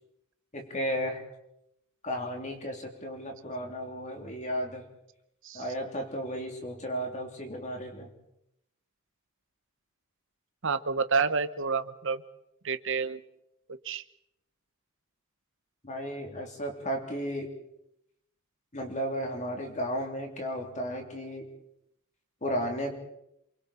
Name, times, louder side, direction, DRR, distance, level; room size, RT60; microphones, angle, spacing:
voice 1, 0.5-1.2 2.0-4.8 5.5-8.1 15.8-17.5 18.7-21.4 22.4-23.0, equal, 35° left, 3 dB, 3.3 m, -34 dB
voice 2, 10.6-12.2 12.6-13.2 13.8-14.0, right 5 dB, 60° right, 11 dB, 1.0 m, -29 dB
28.0 x 24.0 x 4.4 m, 0.78 s
head